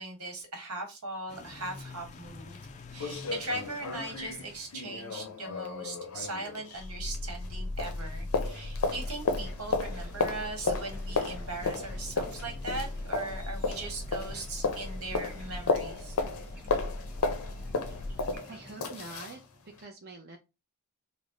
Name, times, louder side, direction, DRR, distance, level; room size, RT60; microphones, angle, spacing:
voice 1, 0.0-2.6 2.9-16.2, right 2 dB, 85° right, 1.4 m, -39 dB
sound 1, 1.3-4.7 6.7-18.4, left 2 dB, 30° left, 0.3 m, -40 dB
sound 2, 2.1-2.2 2.5-2.6 3.0-7.5 7.8-19.4 19.8-19.9, left 3 dB, 80° left, 0.6 m, -34 dB
sound 3, 8.8-19.2, equal, 5° right, 0.9 m, -53 dB
voice 2, 18.5-19.4 19.8-20.4, right 3 dB, 45° right, 0.6 m, -45 dB
3.3 x 2.1 x 3.8 m
head